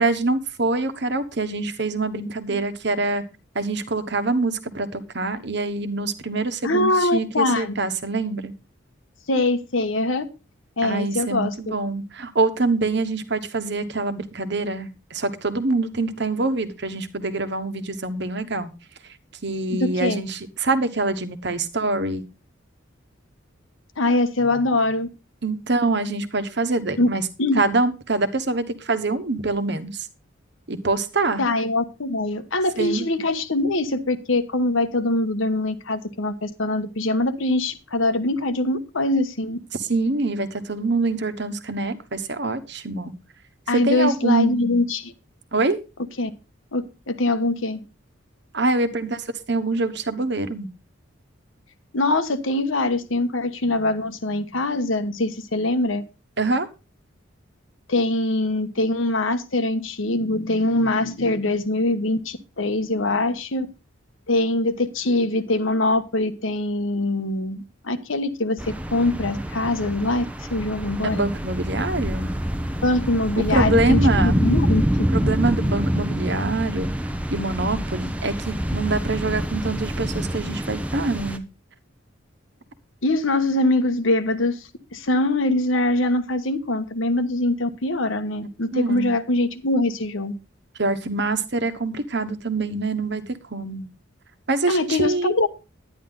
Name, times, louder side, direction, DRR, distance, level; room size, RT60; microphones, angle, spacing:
voice 1, 0.0-3.2 3.5-8.5 10.8-18.7 19.4-22.2 25.4-27.2 27.5-30.1 30.7-31.4 32.8-33.1 39.7-43.1 43.7-44.8 45.5-45.8 48.5-50.7 56.4-56.7 71.0-72.3 73.4-74.4 75.1-76.9 77.3-81.4 88.7-89.1 90.8-93.9 94.5-95.3, right 3 dB, 55° right, 10 dB, 1.3 m, -25 dB
voice 2, 6.6-7.7 9.3-10.2 10.8-11.5 19.7-20.2 24.0-25.1 27.0-27.1 27.4-27.6 31.4-39.6 43.7-45.1 46.2-46.3 46.7-47.8 51.9-56.0 57.9-63.7 64.3-71.3 72.8-74.8 83.0-84.6 84.9-90.3 94.7-95.5, left 2 dB, 75° left, 9 dB, 1.2 m, -23 dB
sound 1, 68.6-81.4, equal, 5° right, 0.7 m, -26 dB
11.0 x 10.0 x 3.9 m, 0.29 s
head